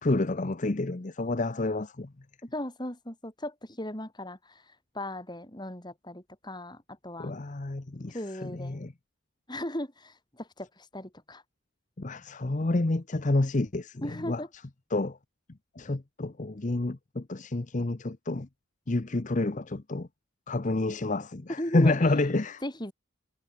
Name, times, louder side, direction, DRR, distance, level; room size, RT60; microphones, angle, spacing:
voice 1, 0.0-2.1 7.2-8.9 12.0-14.4 14.9-15.2 15.8-18.5 18.9-20.1 20.5-22.6, left 2 dB, 40° left, 0.8 m, -29 dB
voice 2, 2.5-7.3 8.1-8.8 9.5-11.4 14.0-14.5 21.6-22.0 22.6-22.9, left 1 dB, 20° left, 5.0 m, -37 dB
head